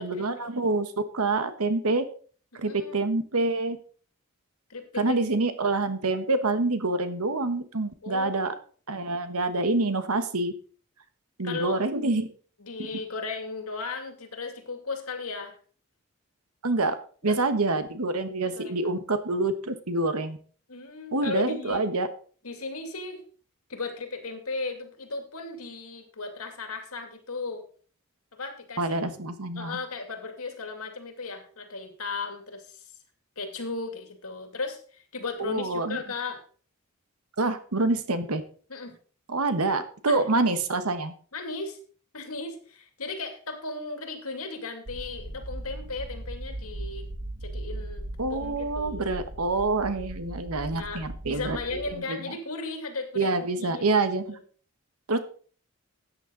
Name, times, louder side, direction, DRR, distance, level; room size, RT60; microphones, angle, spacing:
voice 1, 0.0-2.0 2.5-3.8 5.0-8.5 8.9-10.5 11.4-12.3 16.6-16.9 17.2-20.4 21.1-22.1 28.8-29.8 35.4-36.0 37.4-38.4 39.3-41.1 48.2-51.6 51.9-52.3 53.1-54.4 55.1-55.2, right 3 dB, 85° right, 10 dB, 1.3 m, -27 dB
voice 2, 2.5-3.0 4.7-5.2 8.0-8.4 11.4-11.8 12.6-15.6 17.2-17.4 18.4-18.9 20.7-21.8 22.4-23.2 23.7-27.6 28.3-29.0 29.6-32.9 33.4-36.4 38.7-38.9 40.1-40.2 41.3-41.8 42.1-47.1 47.4-49.1 50.7-53.3 53.6-54.4, left 3 dB, 80° left, 5 dB, 2.4 m, -36 dB
sound 1, 44.9-52.0, right 1 dB, 55° right, 1.4 m, -38 dB
13.0 x 9.2 x 3.9 m, 0.43 s
head